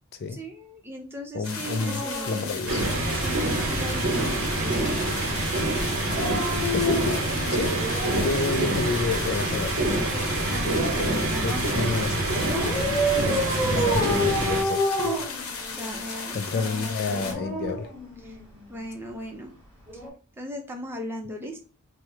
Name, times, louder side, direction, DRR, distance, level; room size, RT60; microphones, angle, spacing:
voice 1, 0.3-2.6 3.1-5.1 8.4-8.7 10.1-12.0 13.6-14.5 15.7-17.3 18.2-18.4 18.7-19.5 19.9-20.0 20.4-21.6, equal, 10° right, 0.5 m, -38 dB
voice 2, 1.3-2.8 6.7-7.8 8.2-9.8 11.4-12.9 13.7-15.2 16.3-17.9, left 4 dB, 45° left, 0.3 m, -30 dB
sound 1, 1.4-17.3, left 4 dB, 85° left, 0.7 m, -36 dB
Dog, 1.6-3.5 6.0-8.3 9.6-11.3 12.4-16.0 17.0-18.6 19.9-20.1, equal, 10° left, 1.4 m, -30 dB
sound 2, 2.7-14.6, right 2 dB, 70° right, 0.7 m, -26 dB
3.0 x 2.0 x 3.5 m
head